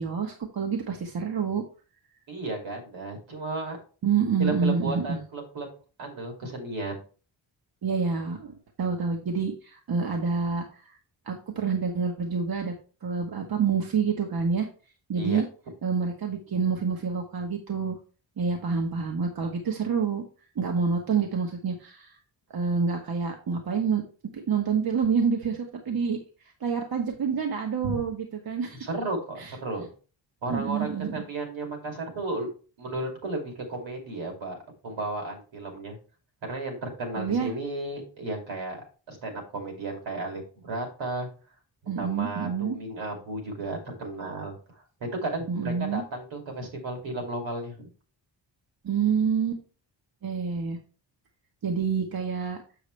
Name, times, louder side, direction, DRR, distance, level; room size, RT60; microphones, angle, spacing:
voice 1, 0.0-1.6 4.0-5.2 7.8-8.5 8.8-10.8 11.3-12.7 13.0-14.7 15.1-15.4 15.8-18.0 18.4-20.2 20.5-22.1 22.5-24.0 24.3-26.2 26.6-28.8 29.4-29.5 30.5-31.2 37.1-37.5 41.9-42.8 45.5-46.0 48.8-49.6 50.2-50.8 51.6-52.6, right 5 dB, 50° right, 2 dB, 1.2 m, -27 dB
voice 2, 2.3-3.8 4.4-5.7 6.0-7.0 15.1-15.4 28.8-29.9 30.4-32.5 32.8-36.0 36.4-41.3 42.0-44.6 45.0-47.9, right 2 dB, 80° right, 2 dB, 2.8 m, -34 dB
7.2 x 6.9 x 3.2 m, 0.36 s
wide cardioid pair, 160°, 45 cm